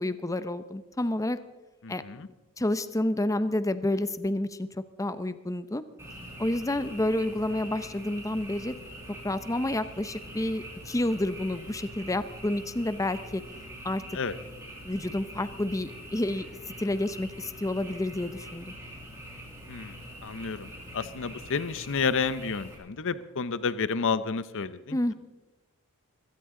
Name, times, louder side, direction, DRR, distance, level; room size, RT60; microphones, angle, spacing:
voice 1, 0.0-1.4 1.9-2.2 2.6-4.7 5.0-5.8 6.4-8.8 9.2-13.4 13.8-14.0 14.8-18.7 24.9-25.1, left 1 dB, 15° left, 12 dB, 0.7 m, -29 dB
voice 2, 1.8-2.3 14.1-14.4 19.7-20.0 20.2-20.7 20.9-25.1, left 5 dB, 65° left, 14 dB, 0.7 m, -30 dB
Frog, 6.0-22.7, equal, 15° right, 7.0 m, -44 dB
22.5 x 17.0 x 3.8 m, 1.1 s
head